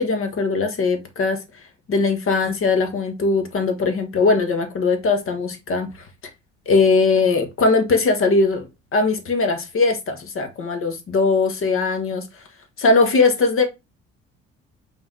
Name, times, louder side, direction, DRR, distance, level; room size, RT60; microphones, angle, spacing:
voice 1, 0.0-1.4 1.9-5.9 6.7-12.2 12.8-13.7, left 3 dB, 40° left, 1.3 m, -20 dB
5.3 x 3.3 x 2.7 m
figure-of-eight pair, 55°, 34 cm